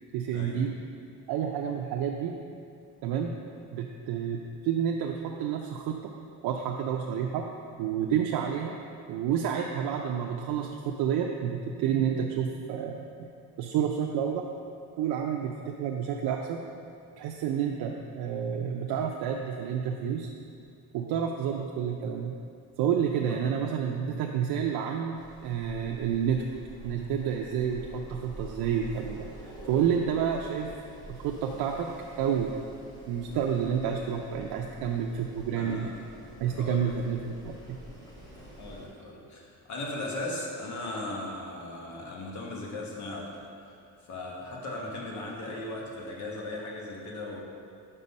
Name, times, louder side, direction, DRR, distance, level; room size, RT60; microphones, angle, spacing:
voice 1, 0.1-0.8 1.3-2.3 3.0-3.3 3.7-6.0 6.4-7.5 7.8-8.8 9.1-13.3 13.6-14.5 15.0-16.6 17.2-20.3 20.9-22.3 22.8-26.4 26.8-30.7 31.1-31.9 32.2-32.5 33.1-35.9 36.4-37.5, right 8 dB, 90° right, 1 dB, 0.5 m, -29 dB
Wind, 25.1-38.9, right 1 dB, 10° left, 1.0 m, -47 dB
voice 2, 35.6-36.0 36.5-36.8 38.6-43.7 44.1-47.4, left 2 dB, 50° left, -2 dB, 1.2 m, -38 dB
5.5 x 5.2 x 5.3 m, 2.4 s
cardioid pair, 165°, 37 cm